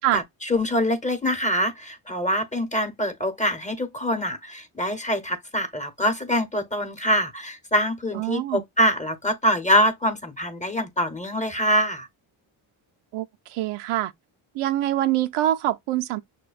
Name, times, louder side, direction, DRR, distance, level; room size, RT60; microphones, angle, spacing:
voice 1, 0.1-12.1, equal, 15° left, 0.9 m, -24 dB
voice 2, 8.1-8.6 13.1-14.1 14.5-16.2, right 13 dB, 85° right, 0.6 m, -25 dB
6.0 x 2.2 x 2.3 m
cardioid pair, 70°, 49 cm